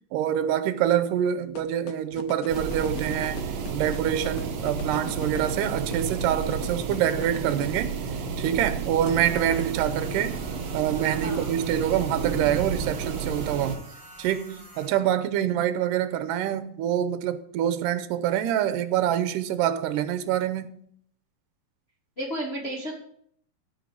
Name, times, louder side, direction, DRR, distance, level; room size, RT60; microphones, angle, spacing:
voice 1, 0.1-3.4 3.7-7.9 8.4-10.4 10.7-13.8 14.2-20.7, right 10 dB, 85° right, 2.3 m, -26 dB
sound 1, 1.6-7.8, left 9 dB, 90° left, 2.5 m, -38 dB
sound 2, 2.5-13.8, right 5 dB, 65° right, 2.0 m, -31 dB
sound 3, 9.0-14.9, right 1 dB, 5° right, 2.3 m, -48 dB
voice 2, 11.2-11.5 22.2-22.9, right 1 dB, 50° left, 0.7 m, -32 dB
15.5 x 5.3 x 4.7 m
omnidirectional pair, 3.9 m